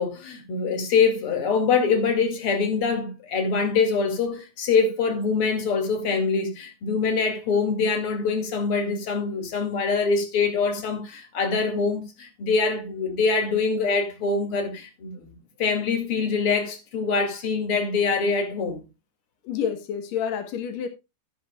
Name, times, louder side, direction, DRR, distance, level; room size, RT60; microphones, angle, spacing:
voice 1, 0.0-18.9, left 5 dB, 40° left, 2.4 m, -24 dB
voice 2, 19.4-20.9, left 8 dB, 85° left, 1.5 m, -29 dB
12.5 x 10.5 x 2.3 m
omnidirectional pair, 4.9 m